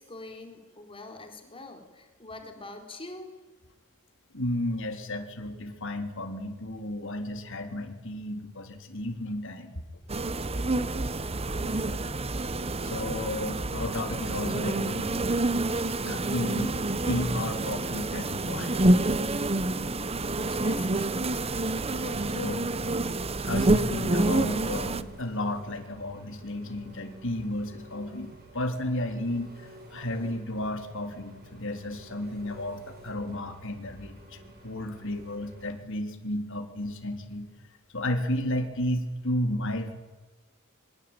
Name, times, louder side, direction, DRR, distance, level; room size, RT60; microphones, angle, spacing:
voice 1, 0.0-3.3 10.8-11.1 11.4-11.7 19.6-21.3, left 2 dB, 25° left, 4 dB, 4.2 m, -45 dB
voice 2, 4.3-9.8 12.8-15.6 16.0-16.7 17.1-18.8 21.9-22.7 23.4-37.5 37.9-39.9, left 1 dB, 65° left, 5 dB, 3.7 m, -33 dB
sound 1, 10.1-25.0, right 2 dB, 30° right, 1.0 m, -28 dB
Engine, 20.2-35.7, right 1 dB, 45° right, 6.7 m, -51 dB
26.0 x 24.0 x 9.0 m, 1.2 s
head